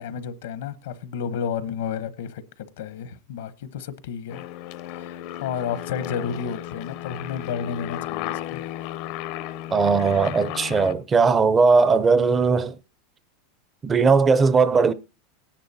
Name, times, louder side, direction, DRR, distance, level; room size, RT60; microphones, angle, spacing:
voice 1, 0.0-4.4 5.0-8.6, left 7 dB, 80° left, 1.0 m, -31 dB
Aircraft, 4.3-10.9, left 13 dB, 55° left, 0.6 m, -34 dB
voice 2, 9.7-12.8 13.8-14.9, right 4 dB, 20° right, 0.6 m, -18 dB
18.0 x 10.0 x 2.8 m
supercardioid pair, 140°, 0 cm